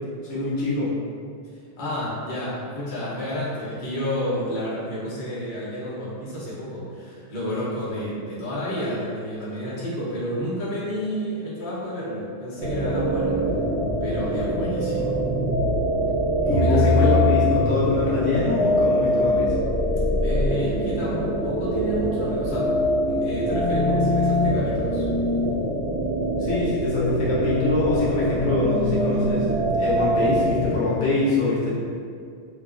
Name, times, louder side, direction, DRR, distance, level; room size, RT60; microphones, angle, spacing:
voice 1, 0.2-0.9 16.5-19.5 26.4-29.5 29.7-31.7, left 2 dB, 75° left, -8 dB, 1.0 m, -24 dB
voice 2, 1.4-13.4 14.0-15.2 16.5-17.2 20.2-22.7 23.0-25.1, equal, 45° left, -9 dB, 0.8 m, -30 dB
sound 1, 12.6-30.8, equal, 65° right, 1.0 m, -23 dB
2.9 x 2.3 x 2.4 m, 2.3 s
omnidirectional pair, 1.3 m